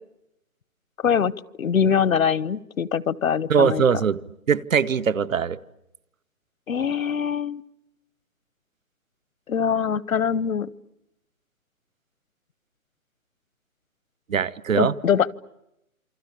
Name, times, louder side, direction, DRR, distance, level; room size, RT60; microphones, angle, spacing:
voice 1, 1.6-3.8 6.7-7.6 9.5-10.7 14.7-15.3, left 7 dB, 70° left, 22 dB, 1.0 m, -23 dB
voice 2, 3.5-4.2 4.5-5.6 14.3-14.9, right 6 dB, 70° right, 14 dB, 1.1 m, -21 dB
28.0 x 25.0 x 8.5 m, 0.86 s
hypercardioid pair, 170°, 42 cm